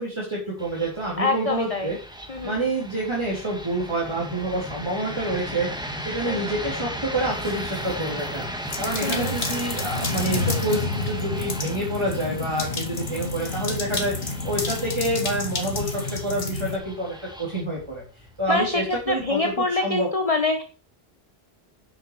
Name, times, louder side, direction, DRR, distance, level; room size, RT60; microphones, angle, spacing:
voice 1, 0.0-2.0 2.4-18.0 18.4-20.1, right 1 dB, 25° right, -3 dB, 3.9 m, -28 dB
sound 1, 0.6-19.6, equal, 5° right, 1.8 m, -36 dB
voice 2, 1.2-1.9 2.3-2.6 6.3-6.4 9.0-9.3 13.1-13.3 18.5-20.6, left 3 dB, 35° left, 6 dB, 1.4 m, -25 dB
sound 2, 7.4-8.0 8.7-16.8, left 3 dB, 65° left, 2.3 m, -29 dB
11.5 x 8.8 x 5.1 m, 0.36 s
omnidirectional pair, 1.1 m